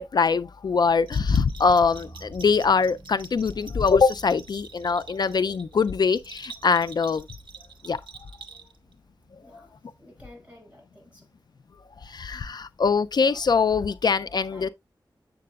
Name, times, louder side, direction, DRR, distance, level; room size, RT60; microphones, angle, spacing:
voice 1, 0.0-7.2 7.9-8.0 12.1-14.7, left 5 dB, 60° left, 0.3 m, -23 dB
Bell, 1.1-8.9, right 5 dB, 85° right, 1.2 m, -46 dB
sound 1, 1.3-12.1 12.3-12.4, right 2 dB, 50° right, 5.8 m, -53 dB
voice 2, 9.4-11.3 14.5-14.7, left 1 dB, 15° right, 5.3 m, -51 dB
7.5 x 7.5 x 2.3 m
wide cardioid pair, 105°, 8 cm